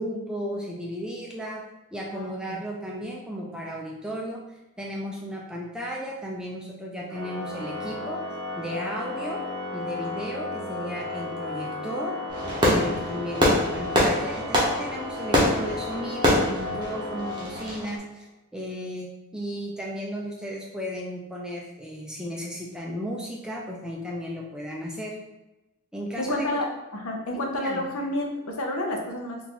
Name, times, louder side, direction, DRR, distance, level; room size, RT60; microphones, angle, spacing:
voice 1, 0.0-4.4 4.8-8.2 8.5-9.4 9.7-12.1 12.6-18.2 18.5-25.2 25.9-26.5 27.3-27.8, equal, 5° right, -3 dB, 0.4 m, -34 dB
voice 2, 2.1-2.6 26.2-26.7 26.9-29.4, left 1 dB, 70° left, 1 dB, 0.6 m, -30 dB
Organ, 7.1-18.0, left 2 dB, 65° right, 0.8 m, -34 dB
Fireworks, 12.3-17.9, equal, 20° right, 0.7 m, -24 dB
3.8 x 2.5 x 2.8 m, 0.99 s
head